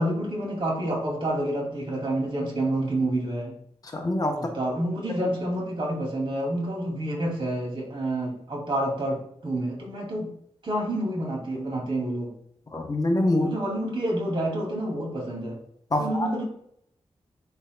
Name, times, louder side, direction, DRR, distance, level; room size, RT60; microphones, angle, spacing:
voice 1, 0.0-3.5 4.3-10.3 10.6-12.4 13.4-15.6 16.0-16.4, right 1 dB, 50° right, -1 dB, 2.5 m, -28 dB
voice 2, 3.9-4.4 12.7-13.5 15.9-16.3, left 1 dB, 35° left, 2 dB, 0.9 m, -24 dB
10.5 x 4.4 x 2.2 m, 0.68 s
wide cardioid pair, 145°, 11 cm